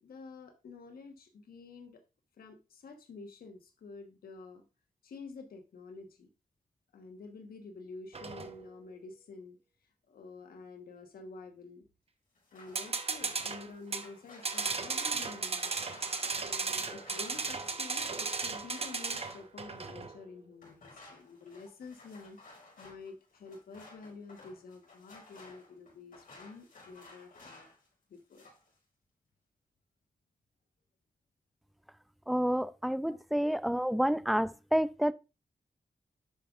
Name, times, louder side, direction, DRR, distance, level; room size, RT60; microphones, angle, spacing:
voice 1, 0.0-2.0 2.4-4.6 5.0-6.3 6.9-9.6 10.1-11.8 12.5-15.7 16.4-27.6 28.1-28.5 33.0-33.2, left 4 dB, 85° left, 1.3 m, -49 dB
sound 1, 8.1-8.6 12.7-14.1 14.4-20.2, right 4 dB, 40° right, 0.9 m, -35 dB
sound 2, 12.3-20.1 20.6-27.9 28.1-28.7, left 2 dB, 70° left, 5.2 m, -55 dB
voice 2, 32.3-35.1, equal, ahead, 0.4 m, -29 dB
11.0 x 5.3 x 2.5 m
cardioid pair, 60°, 15 cm